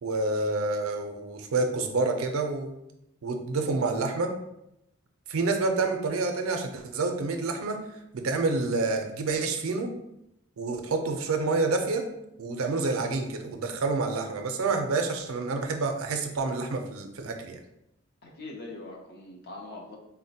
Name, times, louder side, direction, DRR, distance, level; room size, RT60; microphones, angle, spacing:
voice 1, 0.0-2.7 3.2-4.3 5.3-7.8 8.1-9.9 10.6-12.1 12.4-17.6, right 3 dB, 85° right, 5 dB, 0.4 m, -28 dB
voice 2, 18.2-20.0, left 2 dB, 50° left, 0 dB, 0.6 m, -42 dB
3.8 x 2.1 x 2.7 m, 0.85 s
head